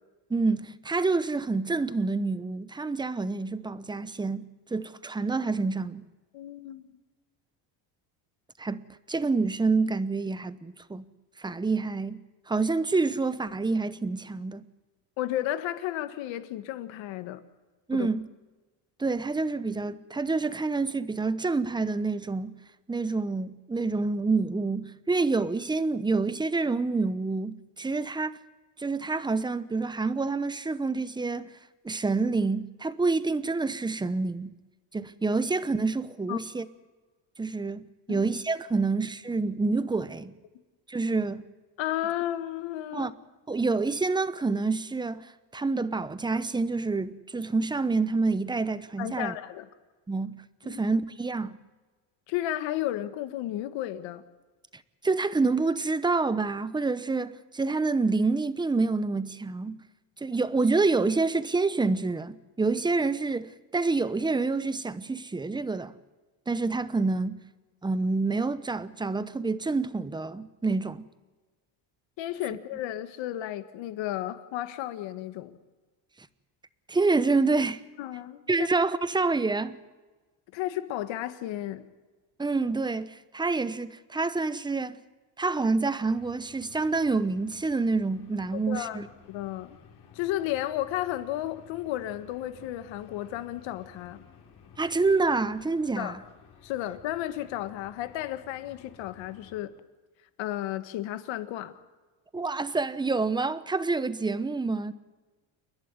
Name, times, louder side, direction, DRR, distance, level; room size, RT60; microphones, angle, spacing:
voice 1, 0.3-4.4 4.7-6.0 8.6-8.8 9.1-11.1 11.4-12.2 12.5-14.6 17.9-18.3 19.0-22.5 22.9-28.4 28.8-31.5 31.8-34.5 34.9-36.7 37.4-40.3 40.9-41.4 42.9-43.1 43.5-49.3 50.1-50.4 50.6-51.6 55.0-59.8 60.2-65.9 66.5-67.4 67.8-71.1 76.9-77.8 78.5-79.8 82.4-85.0 85.4-89.1 94.8-96.2 102.3-104.9, right 3 dB, 10° right, 0.8 m, -27 dB
voice 2, 6.3-7.0 15.2-17.4 17.9-18.1 36.3-36.4 38.1-38.3 41.8-43.1 49.0-49.7 50.6-50.8 52.3-54.2 72.2-75.6 78.0-78.7 80.5-81.8 88.7-89.0 89.3-89.8 90.1-94.2 96.0-96.2 96.6-99.7 100.4-101.7, left 13 dB, 70° left, 1.7 m, -33 dB
sound 1, 86.1-99.6, left 7 dB, 55° left, 4.5 m, -55 dB
29.0 x 11.5 x 9.7 m
cardioid pair, 130°, 46 cm